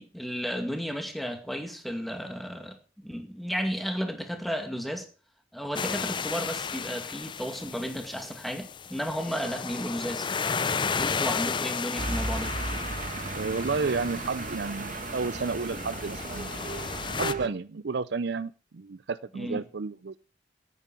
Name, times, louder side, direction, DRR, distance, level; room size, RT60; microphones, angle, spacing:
voice 1, 0.0-2.8 3.0-5.1 5.5-10.3 11.0-12.5 19.3-19.6, equal, ahead, 2.2 m, -33 dB
sound 1, 5.7-17.3, left 5 dB, 25° left, 0.5 m, -34 dB
sound 2, 12.0-17.5, right 3 dB, 45° right, 1.4 m, -35 dB
voice 2, 13.3-16.6 17.1-20.2, right 4 dB, 60° right, 0.5 m, -32 dB
10.0 x 9.1 x 7.4 m
head